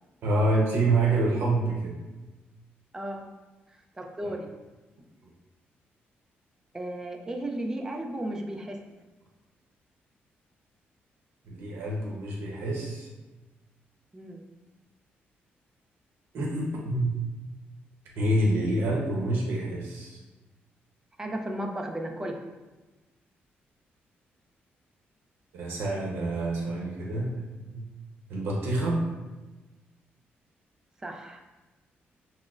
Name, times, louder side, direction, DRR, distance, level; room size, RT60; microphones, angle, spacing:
voice 1, 0.2-2.0 4.2-4.4 11.5-13.1 16.3-17.2 18.1-20.2 25.5-27.3 27.7-27.9 28.3-29.0, right 2 dB, 75° right, -3 dB, 0.7 m, -27 dB
voice 2, 2.9-3.3 4.0-4.5 6.7-8.8 14.1-14.4 21.2-22.4 31.0-31.4, right 1 dB, 15° right, 2 dB, 0.4 m, -34 dB
5.9 x 2.0 x 2.4 m, 1.1 s
cardioid pair, 135°, 4 cm